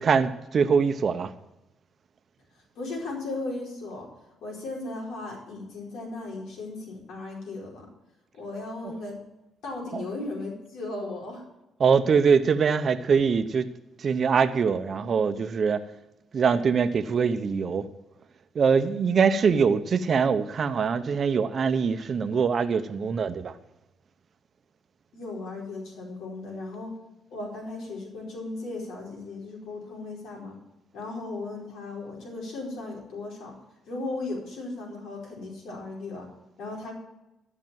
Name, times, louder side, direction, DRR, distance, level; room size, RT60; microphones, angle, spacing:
voice 1, 0.0-1.3 8.8-9.0 9.9-10.0 11.8-13.7 14.0-15.8 16.3-17.9 18.5-23.5, right 6 dB, 50° right, 0.9 m, -23 dB
voice 2, 2.7-4.1 4.4-7.9 8.3-9.2 9.6-11.4 25.1-27.0 27.3-30.6 30.9-33.6 33.9-36.3 36.6-36.9, left 2 dB, 80° left, 4.5 m, -36 dB
13.5 x 6.1 x 7.6 m
cardioid pair, 90°, 0 cm